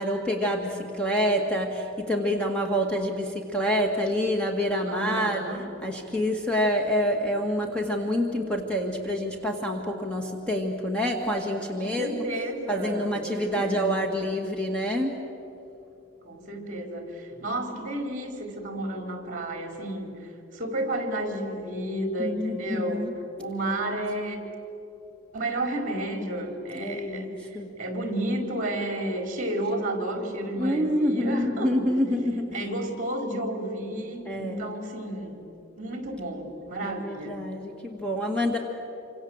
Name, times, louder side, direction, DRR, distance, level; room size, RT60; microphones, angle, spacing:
voice 1, 0.0-5.4 5.8-12.2 12.7-15.1 22.2-23.1 26.8-27.7 30.6-32.6 34.3-34.6 36.8-38.6, equal, 5° left, 2 dB, 1.8 m, -27 dB
voice 2, 4.9-5.7 11.8-14.0 16.2-23.0 23.4-24.4 25.3-31.7 32.5-35.4 35.8-37.4, right 1 dB, 40° right, 4 dB, 4.1 m, -32 dB
27.5 x 26.0 x 8.0 m, 2.9 s
head